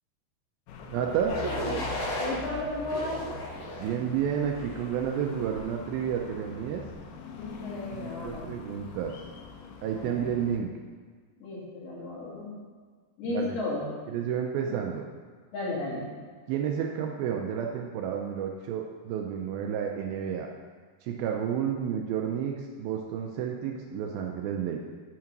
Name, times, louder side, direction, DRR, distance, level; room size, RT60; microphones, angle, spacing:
sound 1, 0.7-10.6, left 4 dB, 85° left, 2.0 m, -43 dB
voice 1, 0.9-1.4 3.8-6.8 8.0-9.1 9.8-10.7 13.2-13.6 14.1-15.1 16.5-20.5 21.0-24.8, right 8 dB, 85° right, 1 dB, 2.1 m, -31 dB
sound 2, 1.3-2.3 2.9-3.9 4.5-4.9, equal, 50° left, 2.3 m, -33 dB
voice 2, 2.2-3.3 7.3-8.4 9.9-10.3 11.4-12.6 13.2-13.8 14.6-14.8 15.5-16.1, left 2 dB, 70° left, -8 dB, 4.2 m, -34 dB
8.9 x 3.7 x 5.8 m, 1.5 s
omnidirectional pair, 4.8 m